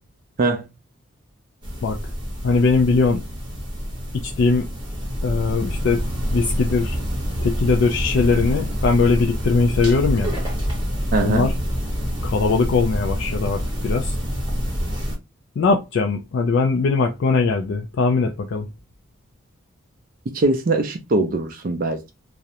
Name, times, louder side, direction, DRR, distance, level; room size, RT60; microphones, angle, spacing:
sound 1, 1.6-15.2, equal, 20° right, 0.8 m, -26 dB
voice 1, 2.4-3.2 4.1-4.7 5.2-6.0 6.3-7.0 7.4-10.3 11.2-11.6 12.2-14.2 15.6-18.7, left 4 dB, 60° left, 0.3 m, -20 dB
voice 2, 11.1-11.5 20.3-22.1, right 2 dB, 40° right, 0.4 m, -21 dB
2.4 x 2.0 x 2.8 m
head